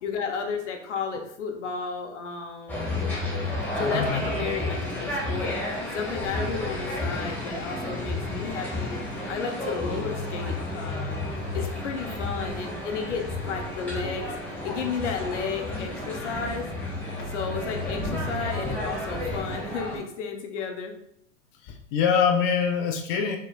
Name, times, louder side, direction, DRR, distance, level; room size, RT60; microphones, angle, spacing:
voice 1, 0.0-2.9 3.8-5.6 5.9-9.0 9.3-11.2 11.5-14.3 14.6-16.7 17.3-21.0, left 5 dB, 65° left, 4 dB, 0.9 m, -33 dB
sound 1, 2.7-20.0, left 2 dB, 5° left, 1.4 m, -31 dB
voice 2, 21.6-23.4, left 7 dB, 30° left, 4 dB, 0.3 m, -24 dB
4.8 x 3.2 x 2.4 m, 0.71 s
hypercardioid pair, 105°, 38 cm